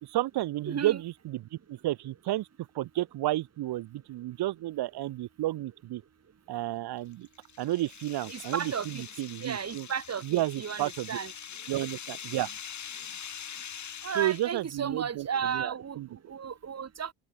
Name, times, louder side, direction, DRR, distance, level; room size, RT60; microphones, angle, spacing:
voice 1, 0.0-2.5 2.7-6.0 6.5-7.3 7.6-9.9 10.2-11.2 11.7-12.5 14.2-16.3, right 15 dB, 70° right, 2.5 m, -32 dB
voice 2, 0.7-1.0 8.3-9.0 9.4-11.3 14.0-16.0 16.3-17.1, right 7 dB, 40° right, 2.1 m, -34 dB
sound 1, 7.0-14.7, left 8 dB, 45° left, 1.9 m, -43 dB
open air
hypercardioid pair, 50°, 40 cm